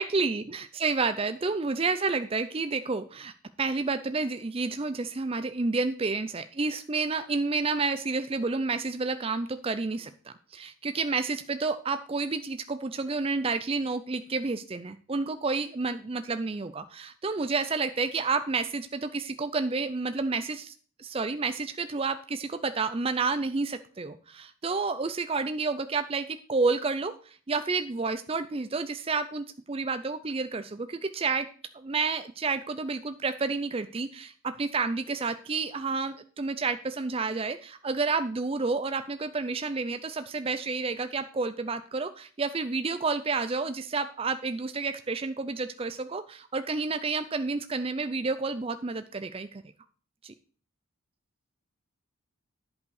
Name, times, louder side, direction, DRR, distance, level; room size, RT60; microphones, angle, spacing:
voice 1, 0.0-3.3 3.6-20.7 21.0-31.5 31.7-49.6 50.2-50.3, right 4 dB, 25° right, 10 dB, 0.5 m, -30 dB
10.5 x 5.5 x 6.4 m, 0.43 s
head